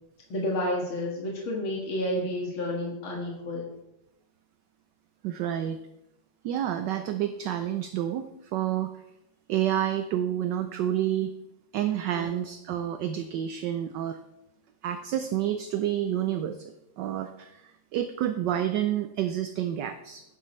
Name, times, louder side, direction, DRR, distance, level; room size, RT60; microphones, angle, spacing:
voice 1, 0.3-3.7 12.1-12.3, left 1 dB, 75° left, -2 dB, 2.7 m, -30 dB
voice 2, 5.2-5.8 6.4-8.3 8.5-8.9 9.5-11.3 11.7-14.2 14.8-20.2, right 11 dB, 70° right, 8 dB, 1.1 m, -29 dB
11.0 x 9.8 x 3.2 m, 0.88 s
omnidirectional pair, 2.2 m